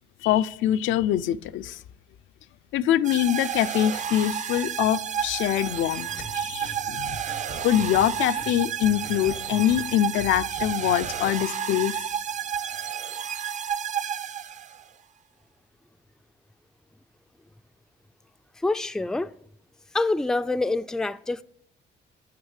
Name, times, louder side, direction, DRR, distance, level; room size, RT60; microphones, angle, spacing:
voice 1, 0.2-1.8 2.7-7.2 7.6-11.9, left 12 dB, 85° left, 0.5 m, -24 dB
sound 1, 3.0-14.9, right 8 dB, 40° right, 0.6 m, -31 dB
sound 2, 6.1-11.3, right 3 dB, 80° right, 2.9 m, -42 dB
voice 2, 18.6-19.3 19.9-21.4, left 2 dB, 5° left, 0.3 m, -26 dB
9.5 x 7.9 x 6.5 m
cardioid pair, 110°, 19 cm